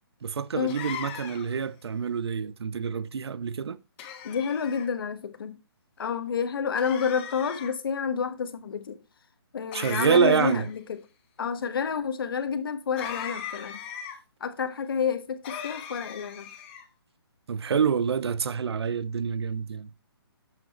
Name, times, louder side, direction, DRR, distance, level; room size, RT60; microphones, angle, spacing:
voice 1, 0.2-3.8 9.7-10.7 17.5-19.9, right 6 dB, 80° right, 0.5 m, -27 dB
sound 1, 0.7-1.6 4.0-4.9 6.8-7.7 9.7-10.8 13.0-14.2 15.4-16.9, left 8 dB, 25° left, 1.1 m, -39 dB
voice 2, 4.2-5.6 6.0-9.0 9.5-11.0 11.4-13.8 14.4-16.5, left 6 dB, 60° left, 1.2 m, -29 dB
7.9 x 7.8 x 2.9 m
hypercardioid pair, 155°, 13 cm